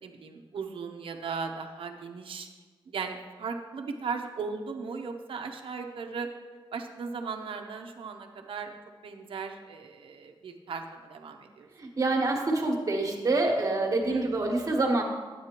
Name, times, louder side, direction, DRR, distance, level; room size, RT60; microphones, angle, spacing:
voice 1, 0.0-2.5 2.9-6.3 6.7-8.7 9.0-11.7 14.1-14.3, right 5 dB, 85° right, 4 dB, 0.8 m, -37 dB
voice 2, 11.8-15.0, right 2 dB, 40° right, 1 dB, 1.4 m, -26 dB
11.0 x 8.5 x 3.0 m, 1.4 s
wide cardioid pair, 130°, 9 cm